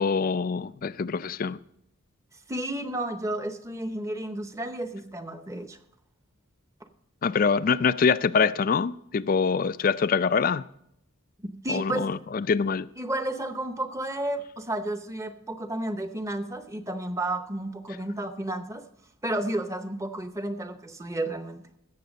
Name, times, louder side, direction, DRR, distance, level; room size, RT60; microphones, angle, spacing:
voice 1, 0.0-1.6 7.2-10.6 11.7-12.9, left 5 dB, 40° left, 0.3 m, -24 dB
voice 2, 2.5-5.8 11.4-12.1 13.0-18.8 19.2-21.6, right 1 dB, 15° right, 0.7 m, -32 dB
16.0 x 6.7 x 5.2 m
head